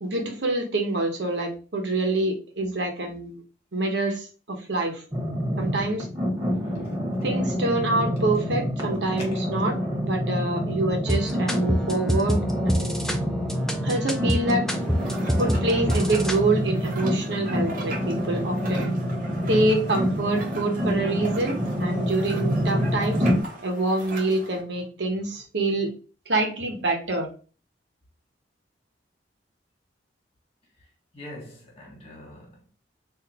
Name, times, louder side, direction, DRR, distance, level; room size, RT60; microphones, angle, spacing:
voice 1, 0.0-3.4 3.7-5.0 5.6-6.1 7.2-9.8 10.0-12.4 12.6-13.0 13.8-14.6 15.4-18.9 19.5-23.3 23.6-25.9 26.3-27.3, right 2 dB, 75° right, 1.0 m, -26 dB
sound 1, 5.1-23.4, equal, 20° right, 1.1 m, -27 dB
voice 2, 6.6-7.0 9.2-9.4 9.8-9.9 31.1-32.7, left 1 dB, 35° left, 1.6 m, -44 dB
sound 2, 11.1-16.4, equal, 5° left, 0.5 m, -27 dB
sound 3, 14.7-24.6, right 2 dB, 50° right, 1.0 m, -40 dB
4.0 x 2.7 x 2.8 m
head